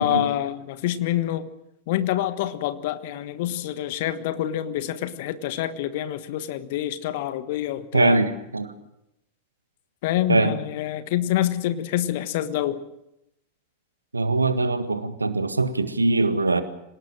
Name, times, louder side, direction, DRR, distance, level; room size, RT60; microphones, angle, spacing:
voice 1, 0.0-1.5 1.9-8.2 10.0-12.8, left 12 dB, 50° left, 12 dB, 1.4 m, -26 dB
voice 2, 7.9-8.7 10.3-10.6 14.1-16.6, right 3 dB, 80° right, 11 dB, 1.7 m, -22 dB
26.5 x 18.5 x 7.5 m, 0.86 s
figure-of-eight pair, 90°, 0 cm